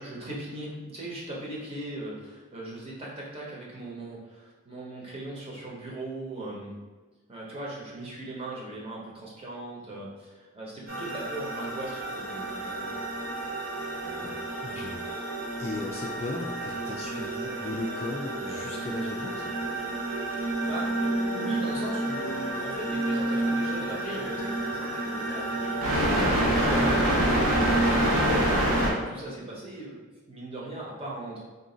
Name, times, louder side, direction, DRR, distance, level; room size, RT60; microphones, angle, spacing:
voice 1, 0.0-6.8 7.3-13.0 20.3-31.4, right 2 dB, 25° right, -4 dB, 0.9 m, -39 dB
sound 1, 10.9-28.9, right 1 dB, 90° right, 1.2 m, -28 dB
voice 2, 14.0-15.2 15.6-19.6, left 2 dB, 30° left, 0 dB, 0.3 m, -37 dB
3.9 x 2.5 x 3.8 m, 1.3 s
head